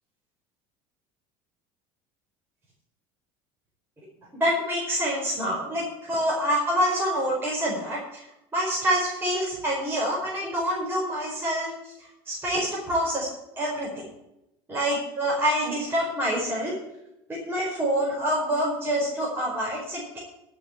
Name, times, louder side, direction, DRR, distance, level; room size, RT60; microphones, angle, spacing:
voice 1, 4.4-8.3 8.5-13.3 13.6-14.1 14.7-16.8 17.3-20.2, equal, 20° right, -5 dB, 4.9 m, -26 dB
13.0 x 5.8 x 9.3 m, 0.88 s
supercardioid pair, 105°, 12 cm